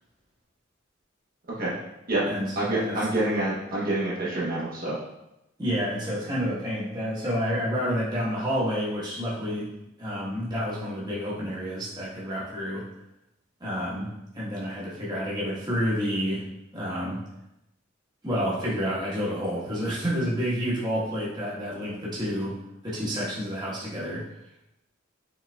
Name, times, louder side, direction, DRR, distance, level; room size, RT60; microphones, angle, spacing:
voice 1, 2.5-5.0, right 1 dB, 45° right, -7 dB, 1.0 m, -27 dB
voice 2, 5.6-9.7 10.0-12.8 13.6-14.1 14.3-16.4 16.7-17.2 18.2-22.6 22.8-24.2, equal, 20° right, -7 dB, 1.2 m, -29 dB
5.1 x 3.7 x 2.3 m, 0.87 s
head